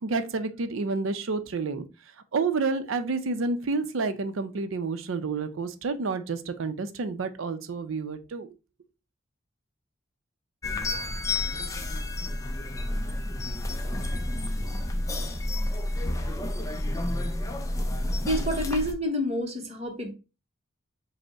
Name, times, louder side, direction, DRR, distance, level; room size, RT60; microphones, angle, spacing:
voice 1, 0.0-1.8 2.3-8.5, right 4 dB, 70° right, 0.5 m, -29 dB
sound 1, 10.6-18.9, left 1 dB, 15° left, 0.4 m, -30 dB
voice 2, 18.3-20.1, left 1 dB, 30° right, 0.9 m, -28 dB
5.1 x 2.1 x 3.4 m
head